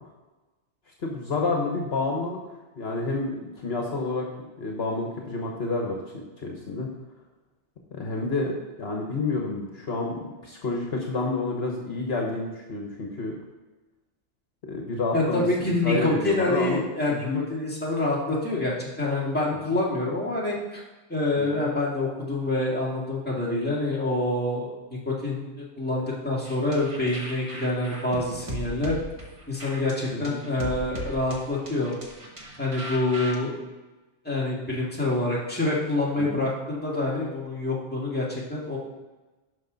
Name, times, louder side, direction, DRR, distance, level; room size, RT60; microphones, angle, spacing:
voice 1, 1.0-2.4 2.8-4.3 4.6-6.0 6.4-6.9 7.9-13.3 14.7-16.8 17.1-17.4 19.7-19.8 21.4-21.7 30.1-30.4 36.2-36.3, left 3 dB, 60° left, 0 dB, 1.3 m, -29 dB
voice 2, 15.1-17.2 17.5-20.8 21.1-28.9 29.5-32.0 32.6-33.6 34.2-38.8, left 2 dB, 10° left, -5 dB, 2.1 m, -26 dB
sound 1, 26.4-33.3, equal, 30° right, 1.2 m, -38 dB
11.5 x 5.5 x 3.9 m, 1.2 s
omnidirectional pair, 1.2 m